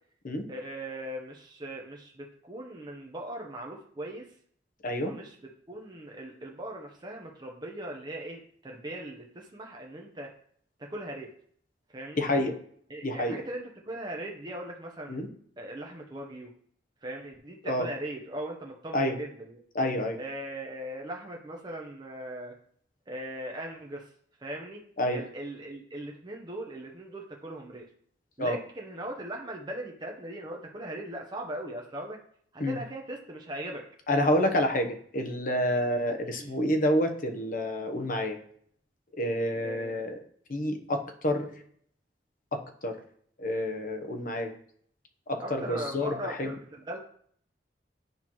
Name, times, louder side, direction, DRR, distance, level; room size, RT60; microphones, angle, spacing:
voice 1, 0.5-4.3 5.0-5.4 5.7-10.3 10.8-11.3 11.9-12.2 12.9-15.2 15.6-16.5 17.0-19.6 20.2-22.5 23.1-24.1 24.4-27.9 28.4-32.2 32.5-33.8 36.4-36.5 39.5-40.0 45.4-47.0, right 1 dB, 25° right, 0 dB, 0.8 m, -39 dB
voice 2, 4.8-5.1 12.2-12.6 13.0-13.4 15.1-15.3 17.7-17.9 18.9-19.1 19.7-20.2 25.0-25.2 28.4-28.6 32.6-32.8 34.1-38.4 39.2-40.2 40.5-41.5 42.5-43.0 43.4-44.5 45.3-46.5, left 1 dB, 50° left, 5 dB, 1.0 m, -28 dB
9.3 x 5.7 x 3.1 m, 0.62 s
head